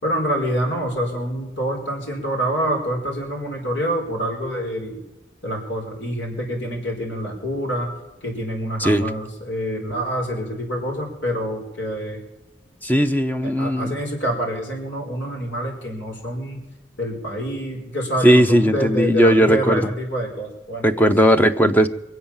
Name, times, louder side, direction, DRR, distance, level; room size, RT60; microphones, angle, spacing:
voice 1, 0.0-5.0 5.4-7.9 8.2-12.2 13.4-16.6 17.0-21.1, equal, 80° left, 1 dB, 4.5 m, -26 dB
voice 2, 12.8-14.0 18.2-19.9 20.8-21.9, equal, 10° left, 9 dB, 0.6 m, -17 dB
23.5 x 7.9 x 7.2 m, 1.0 s
head